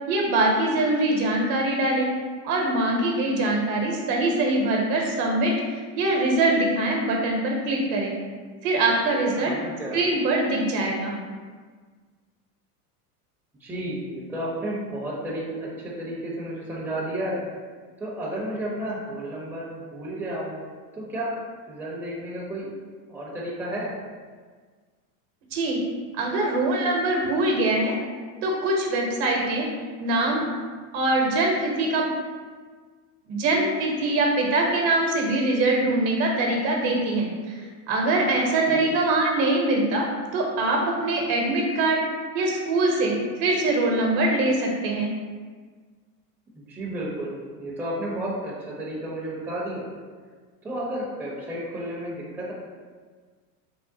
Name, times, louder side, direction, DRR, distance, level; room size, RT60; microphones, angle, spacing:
voice 1, 0.1-2.1 2.4-8.1 8.6-9.5 9.9-11.1 25.5-25.8 26.1-27.9 28.4-29.7 30.0-30.4 30.9-32.1 33.3-37.6 37.9-40.1 40.3-42.0 42.3-45.1, right 2 dB, 50° right, 0 dB, 0.9 m, -23 dB
voice 2, 9.4-10.0 13.6-17.4 18.0-20.6 20.9-21.3 21.7-22.7 23.1-23.9 38.7-38.9 46.5-49.9 50.6-52.5, right 1 dB, 5° right, -6 dB, 0.6 m, -32 dB
3.6 x 2.0 x 3.8 m, 1.5 s
supercardioid pair, 110°, 47 cm